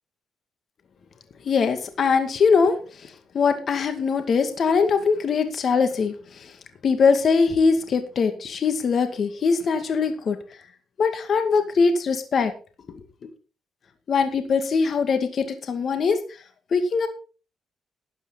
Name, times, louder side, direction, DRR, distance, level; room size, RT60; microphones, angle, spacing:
voice 1, 1.5-2.8 3.3-6.1 6.4-6.5 6.8-10.4 11.0-12.5 14.1-16.2 16.7-17.1, left 5 dB, 50° left, 8 dB, 2.2 m, -21 dB
13.0 x 9.0 x 4.1 m, 0.36 s
cardioid pair, 90°, 0 cm